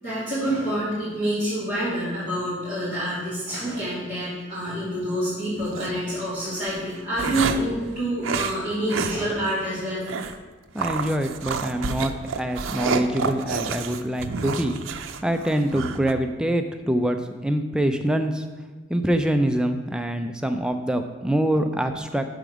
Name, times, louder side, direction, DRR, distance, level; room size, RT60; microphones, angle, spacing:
voice 1, 0.0-10.2, right 1 dB, 40° left, -11 dB, 2.6 m, -27 dB
sound 1, 5.6-5.9 6.6-7.8 8.2-8.6 8.9-9.2 9.5-9.6 10.1-10.4 10.8-16.1, right 5 dB, 80° right, 0.5 m, -29 dB
voice 2, 10.7-14.8 15.2-18.5 18.9-22.3, right 1 dB, 5° right, 6 dB, 0.3 m, -25 dB
6.8 x 5.1 x 6.1 m, 1.3 s
head